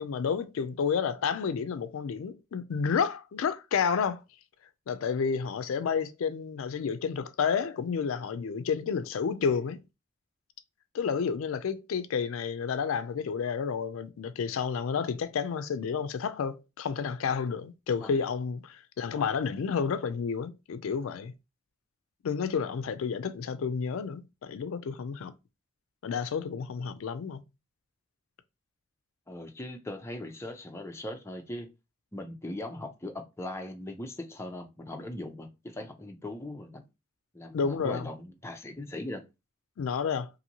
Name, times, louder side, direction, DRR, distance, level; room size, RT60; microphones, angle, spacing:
voice 1, 0.0-4.2 4.9-9.8 10.9-21.3 22.2-25.3 26.0-27.4 37.5-38.1 39.8-40.3, left 6 dB, 70° left, 0.4 m, -30 dB
voice 2, 29.3-31.7 32.1-33.1 33.4-36.8 37.3-39.2, left 1 dB, 10° left, 0.5 m, -39 dB
2.7 x 2.6 x 2.8 m
head